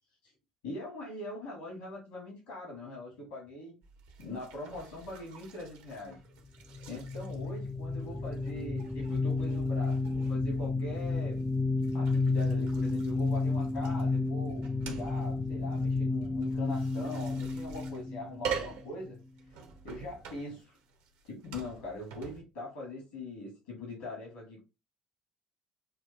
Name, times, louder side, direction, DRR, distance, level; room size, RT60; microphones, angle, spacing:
voice 1, 0.6-3.8 4.2-6.2 6.9-11.4 11.9-19.2 19.8-20.8 21.3-24.6, left 2 dB, 75° left, 1.8 m, -42 dB
sound 1, 3.8-22.4, right 7 dB, 65° right, 0.7 m, -46 dB
sound 2, 6.7-19.2, left 3 dB, 15° left, 0.4 m, -31 dB
5.5 x 2.5 x 3.3 m
figure-of-eight pair, 50°, 3 cm